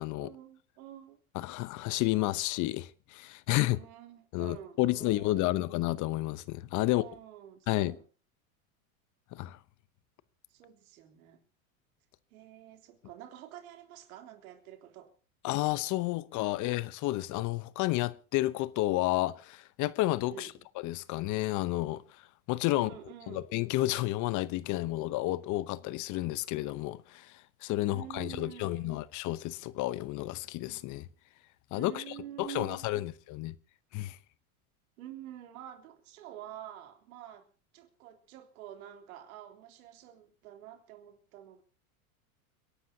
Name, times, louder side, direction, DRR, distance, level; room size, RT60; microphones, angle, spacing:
voice 1, 0.2-1.2 3.7-5.6 6.8-8.1 10.5-11.4 12.3-15.1 20.3-20.7 22.7-23.4 27.8-29.0 31.7-33.1 35.0-37.5 37.7-41.6, right 12 dB, 75° right, 3.4 m, -48 dB
voice 2, 1.3-3.8 4.3-7.0 7.7-7.9 9.3-9.6 15.4-20.5 20.8-22.0 22.5-22.9 23.3-27.3 27.6-31.1 31.7-32.0 32.4-33.5 33.9-34.2, left 17 dB, 45° left, 0.9 m, -31 dB
30.0 x 11.5 x 2.8 m
supercardioid pair, 115°, 43 cm